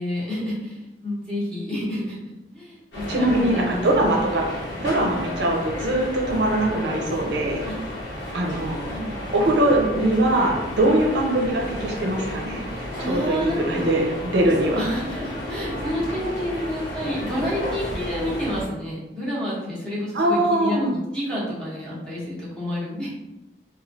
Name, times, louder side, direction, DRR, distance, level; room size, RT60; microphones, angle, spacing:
voice 1, 0.0-3.9 7.6-7.7 8.9-9.2 13.0-13.9 14.8-23.1, equal, 5° left, -7 dB, 0.9 m, -29 dB
sound 1, 2.9-18.7, left 1 dB, 80° left, 1.0 m, -32 dB
voice 2, 3.1-4.5 4.8-7.6 8.3-8.8 9.3-12.7 13.1-14.8 20.1-20.9, right 1 dB, 65° right, 0 dB, 0.5 m, -22 dB
3.1 x 2.3 x 2.6 m, 0.98 s
head